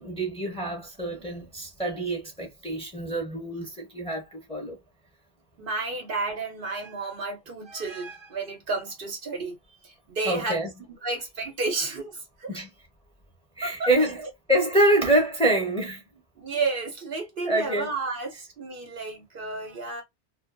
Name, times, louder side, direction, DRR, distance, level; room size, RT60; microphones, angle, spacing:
voice 1, 0.0-4.8 10.2-10.7 12.5-12.7 13.6-14.2 14.5-16.0 17.4-17.9, right 1 dB, 5° left, 0.8 m, -26 dB
voice 2, 5.6-9.6 9.8-10.6 11.0-12.6 13.6-13.9 16.4-20.0, right 3 dB, 60° right, 0.9 m, -32 dB
2.6 x 2.2 x 2.5 m
omnidirectional pair, 1.1 m